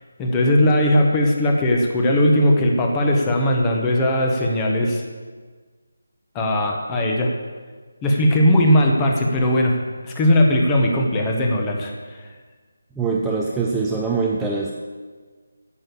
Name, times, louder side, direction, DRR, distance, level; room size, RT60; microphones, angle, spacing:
voice 1, 0.2-5.0 6.3-7.3 8.0-9.8 10.0-11.9, left 1 dB, 15° left, 0 dB, 1.4 m, -18 dB
voice 2, 13.0-14.7, right 4 dB, 5° right, -2 dB, 0.6 m, -23 dB
9.4 x 8.0 x 6.9 m, 1.5 s
figure-of-eight pair, 155°, 0 cm